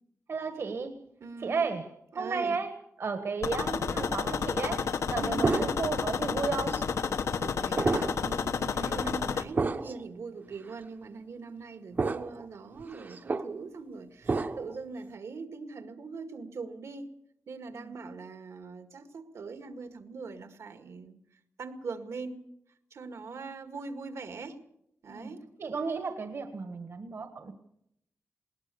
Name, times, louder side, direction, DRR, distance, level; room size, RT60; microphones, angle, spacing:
voice 1, 0.3-1.0 1.4-6.8 17.7-17.9 25.1-25.3 25.6-27.5, right 4 dB, 55° right, 7 dB, 1.5 m, -34 dB
voice 2, 1.2-1.6 2.1-2.6 5.2-5.4 7.1-17.1 17.5-21.2 21.6-22.4 22.9-24.6 25.0-25.5, right 4 dB, 75° right, 7 dB, 2.0 m, -42 dB
sound 1, 3.4-9.4, left 6 dB, 85° left, 1.2 m, -30 dB
sound 2, 5.4-6.1 6.7-6.8 7.8-8.3 8.7-8.9 9.6-10.0 10.7-10.8 12.0-12.5 12.8-13.5 14.3-14.8, right 3 dB, 40° right, 0.9 m, -30 dB
20.5 x 19.5 x 7.0 m, 0.76 s
wide cardioid pair, 160°, 5 cm